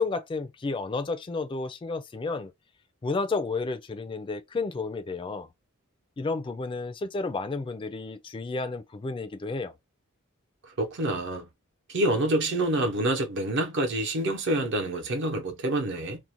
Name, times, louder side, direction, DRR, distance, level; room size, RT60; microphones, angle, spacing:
voice 1, 0.0-2.5 3.0-5.5 6.2-9.7, left 3 dB, 25° left, 0.3 m, -31 dB
voice 2, 10.6-11.5 11.9-16.2, right 1 dB, 60° right, 0.7 m, -27 dB
2.5 x 2.1 x 2.8 m
head